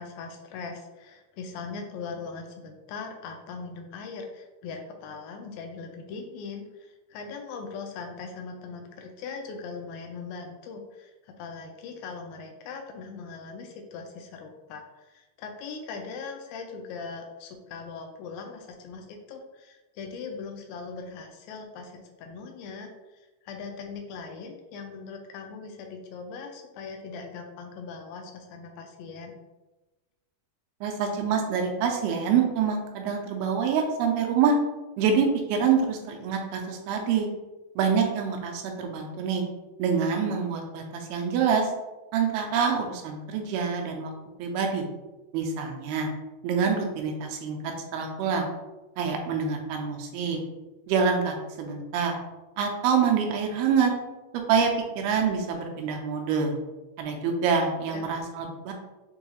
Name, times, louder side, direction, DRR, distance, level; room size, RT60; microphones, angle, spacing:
voice 1, 0.0-29.4 57.9-58.1, left 4 dB, 80° left, 3 dB, 2.1 m, -40 dB
voice 2, 30.8-34.5 35.0-37.3 37.8-39.4 39.8-41.7 42.1-44.1 44.4-44.9 45.3-46.1 46.4-47.6 47.9-48.5 49.0-50.4 50.9-52.1 52.6-53.9 54.5-54.7 55.0-56.6 57.0-58.7, right 6 dB, 85° right, 2 dB, 2.5 m, -26 dB
6.4 x 2.3 x 2.8 m, 1.1 s
omnidirectional pair, 4.4 m